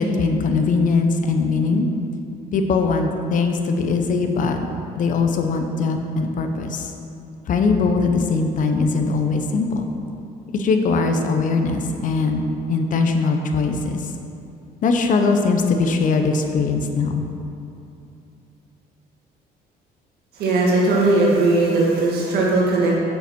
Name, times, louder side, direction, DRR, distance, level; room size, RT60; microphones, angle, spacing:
voice 1, 0.0-1.9 2.5-4.6 4.9-6.9 7.5-9.8 10.5-12.4 12.7-14.1 14.8-17.2, left 4 dB, 50° left, 5 dB, 0.8 m, -20 dB
voice 2, 20.3-23.0, right 2 dB, 70° right, -3 dB, 1.8 m, -18 dB
6.7 x 5.6 x 6.0 m, 2.7 s
cardioid pair, 110°, 17 cm